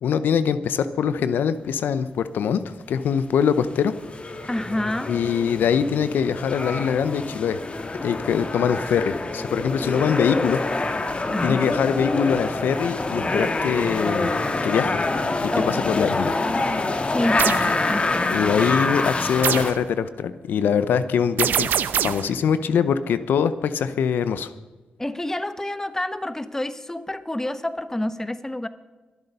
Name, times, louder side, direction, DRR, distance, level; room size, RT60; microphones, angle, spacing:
voice 1, 0.0-3.9 5.1-7.6 8.0-10.6 11.4-14.3 14.6-15.0 15.4-16.4 18.3-21.7 22.0-24.5, left 7 dB, 80° left, 13 dB, 0.6 m, -23 dB
sound 1, 3.6-19.7, left 2 dB, 35° left, 1.6 m, -26 dB
voice 2, 4.5-5.2 11.3-11.7 15.5-16.1 17.1-18.6 25.0-28.7, left 1 dB, 15° left, 12 dB, 1.1 m, -28 dB
sound 2, 17.4-17.7 19.4-19.8 21.4-22.3, right 9 dB, 80° right, 0.6 m, -23 dB
23.0 x 8.1 x 5.5 m, 1.2 s
supercardioid pair, 50°, 3 cm